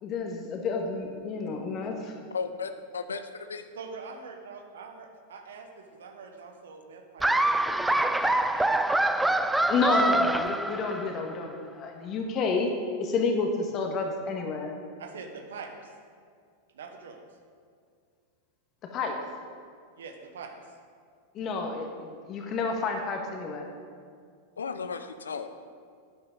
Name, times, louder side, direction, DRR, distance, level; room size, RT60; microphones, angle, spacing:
voice 1, 0.0-2.2 9.7-12.7 13.0-14.7 18.9-19.2 21.3-23.7, left 4 dB, 40° left, 2 dB, 1.7 m, -30 dB
voice 2, 2.3-3.2 3.5-3.6 24.6-25.6, left 5 dB, 85° left, 9 dB, 0.6 m, -34 dB
voice 3, 3.7-8.7 8.9-9.2 9.7-10.0 15.0-15.9 16.7-17.2 20.0-20.5, right 5 dB, 75° right, 4 dB, 1.3 m, -44 dB
Laughter, 7.2-11.2, right 1 dB, 5° right, 0.4 m, -25 dB
11.0 x 9.8 x 3.9 m, 2.1 s
hypercardioid pair, 95°, 0 cm